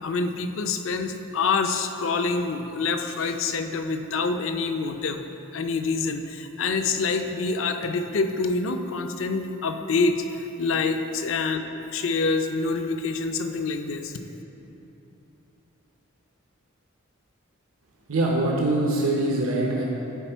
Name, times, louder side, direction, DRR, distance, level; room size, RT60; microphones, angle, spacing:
voice 1, 0.0-5.2 5.5-14.1, left 4 dB, 65° left, 7 dB, 0.5 m, -26 dB
voice 2, 18.1-19.8, right 2 dB, 80° right, -2 dB, 0.8 m, -23 dB
10.0 x 4.2 x 4.5 m, 2.9 s
head